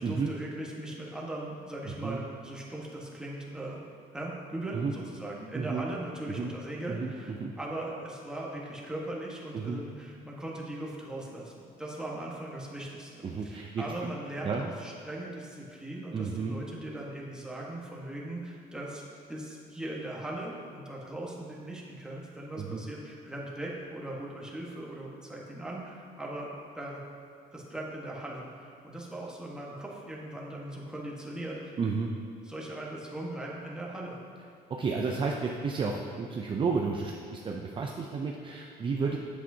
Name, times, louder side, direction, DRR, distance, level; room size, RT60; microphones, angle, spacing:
voice 1, 0.0-3.8 4.1-19.0 19.3-27.0 27.5-31.8 32.5-34.2 39.0-39.2, right 1 dB, 5° right, -4 dB, 1.3 m, -39 dB
voice 2, 1.8-2.2 4.7-4.9 5.5-5.9 6.3-6.5 6.9-7.5 9.5-9.8 13.2-13.8 14.4-14.6 16.1-16.6 22.6-22.8 31.8-32.1 34.8-39.2, right 5 dB, 30° right, 0 dB, 0.5 m, -32 dB
8.3 x 7.2 x 2.8 m, 2.5 s
cardioid pair, 110°, 17 cm